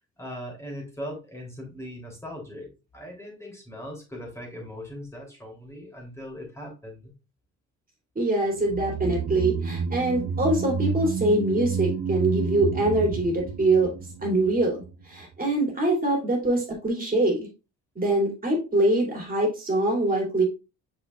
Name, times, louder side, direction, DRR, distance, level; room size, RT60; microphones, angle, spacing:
voice 1, 0.2-7.1, equal, 10° left, 0 dB, 3.3 m, -39 dB
voice 2, 8.1-13.9 14.2-17.5 17.9-20.4, right 2 dB, 30° right, -1 dB, 3.0 m, -24 dB
sound 1, 8.5-14.9 15.2-15.3, right 5 dB, 65° right, 1.0 m, -30 dB
6.8 x 5.7 x 2.5 m, 0.29 s
cardioid pair, 90°, 30 cm